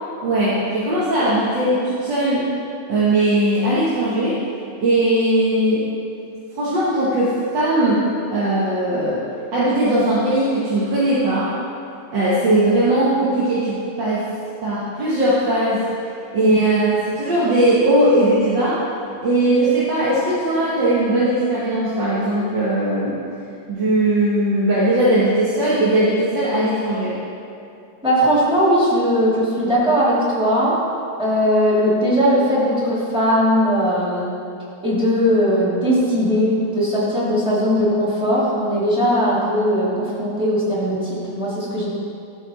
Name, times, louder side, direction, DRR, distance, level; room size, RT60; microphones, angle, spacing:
voice 1, 0.2-2.5 2.9-4.4 4.8-5.9 6.6-8.0 8.3-9.2 9.5-11.5 12.1-14.3 14.6-15.8 16.3-18.8 19.2-23.2 23.7-27.2, right 1 dB, 65° right, -9 dB, 1.9 m, -19 dB
voice 2, 28.0-30.8 31.2-34.3 34.8-41.9, equal, 5° right, -7 dB, 1.9 m, -19 dB
12.5 x 4.7 x 4.1 m, 2.6 s
omnidirectional pair, 2.2 m